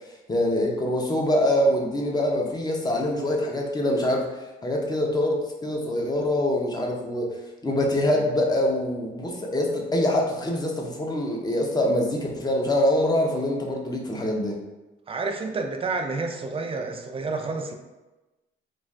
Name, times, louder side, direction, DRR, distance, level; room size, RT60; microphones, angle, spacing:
voice 1, 0.3-4.3 4.6-5.4 5.6-7.3 7.6-14.6, left 1 dB, 20° left, 0 dB, 0.6 m, -24 dB
voice 2, 15.1-17.7, right 3 dB, 30° right, 4 dB, 0.4 m, -29 dB
2.5 x 2.3 x 3.2 m, 1.1 s
cardioid pair, 90°, 20 cm